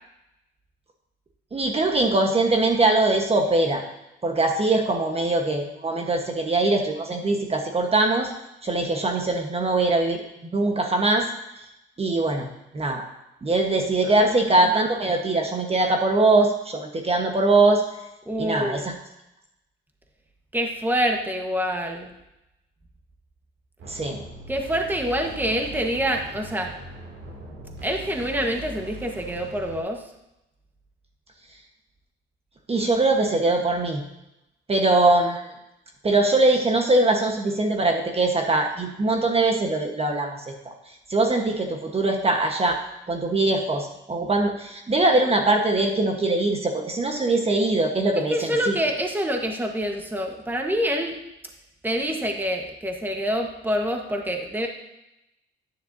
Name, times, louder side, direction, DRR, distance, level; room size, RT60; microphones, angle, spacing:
voice 1, 1.5-3.8 4.2-8.3 8.6-10.2 10.5-11.3 12.0-12.5 12.7-13.0 13.4-17.8 18.4-18.8 23.9-24.2 32.7-34.0 34.7-35.5 36.0-40.7 41.1-42.8 43.1-48.8, right 2 dB, 30° right, 3 dB, 1.2 m, -22 dB
voice 2, 18.3-18.9 20.5-22.2 24.5-26.7 27.8-30.1 48.3-51.2 51.8-54.7, equal, 10° right, 3 dB, 1.2 m, -26 dB
sound 1, 23.8-29.8, right 2 dB, 80° right, 2.5 m, -40 dB
10.0 x 9.9 x 2.7 m, 0.88 s
cardioid pair, 90°, 20 cm